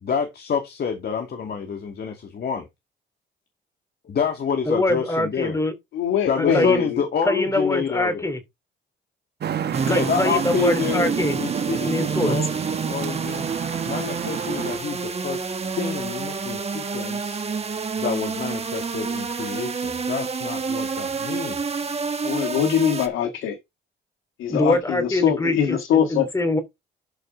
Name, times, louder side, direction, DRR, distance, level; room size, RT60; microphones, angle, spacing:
voice 1, 0.0-2.6 4.0-5.6 6.3-8.2 9.9-13.5 13.9-15.5 15.8-17.4 18.0-21.9, left 6 dB, 55° left, 2.3 m, -28 dB
voice 2, 4.7-5.7 6.4-6.8 7.3-8.4 9.9-11.4 11.7-12.4 24.5-26.6, left 1 dB, 15° left, 3.0 m, -24 dB
voice 3, 5.9-7.0 22.2-23.6 24.4-26.3, left 8 dB, 85° left, 1.7 m, -22 dB
Traffic noise roadway noise, 9.4-14.8, right 8 dB, 55° right, 1.7 m, -29 dB
sound 1, 9.7-23.1, right 5 dB, 30° right, 1.7 m, -29 dB
12.5 x 5.1 x 4.0 m
cardioid pair, 90°, 20 cm